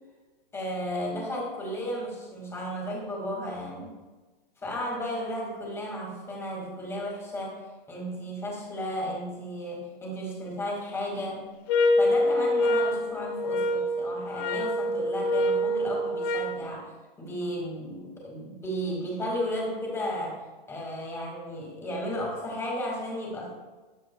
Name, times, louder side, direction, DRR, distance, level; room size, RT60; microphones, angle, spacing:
voice 1, 0.5-3.9 4.6-11.4 12.0-23.5, equal, 10° left, -2 dB, 2.2 m, -34 dB
sound 1, 11.7-16.6, left 1 dB, 25° left, 0.4 m, -25 dB
13.5 x 9.7 x 2.3 m, 1.2 s
hypercardioid pair, 155°, 29 cm